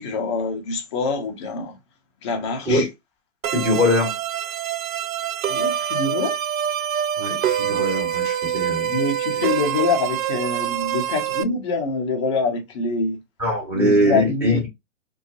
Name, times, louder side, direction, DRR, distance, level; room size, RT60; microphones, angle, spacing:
voice 1, 0.0-1.8 2.2-2.9 5.5-6.3 8.9-13.2 13.7-14.6, left 3 dB, 25° left, 0.5 m, -25 dB
sound 1, 3.4-11.4, right 9 dB, 85° right, 0.5 m, -25 dB
voice 2, 3.5-4.1 7.2-8.9 13.4-14.7, left 1 dB, 5° right, 1.2 m, -22 dB
2.5 x 2.3 x 2.4 m
hypercardioid pair, 145°, 40 cm